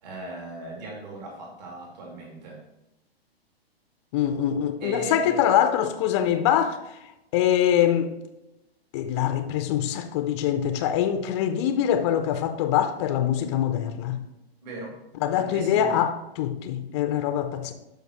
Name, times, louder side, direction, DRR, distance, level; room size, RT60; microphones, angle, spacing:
voice 1, 0.0-2.6 4.8-5.4 14.6-15.0 15.3-16.0, right 2 dB, 45° right, 2.6 m, -38 dB
voice 2, 4.1-6.8 7.3-8.1 8.9-14.2 15.2-17.7, left 10 dB, 30° left, 0.7 m, -24 dB
12.0 x 5.3 x 3.0 m
figure-of-eight pair, 115°, 31 cm